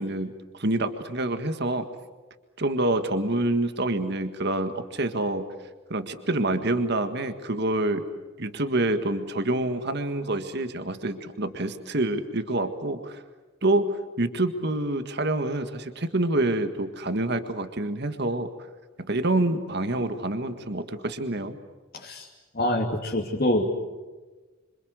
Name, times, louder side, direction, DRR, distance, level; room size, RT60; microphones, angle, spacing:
voice 1, 0.0-1.9 2.6-5.5 5.9-8.0 8.4-13.2 13.6-18.5 19.0-21.6, right 2 dB, 50° right, 8 dB, 1.8 m, -27 dB
voice 2, 21.9-22.3 22.5-23.7, left 1 dB, 45° left, -1 dB, 2.7 m, -25 dB
27.0 x 25.5 x 8.1 m, 1.3 s
head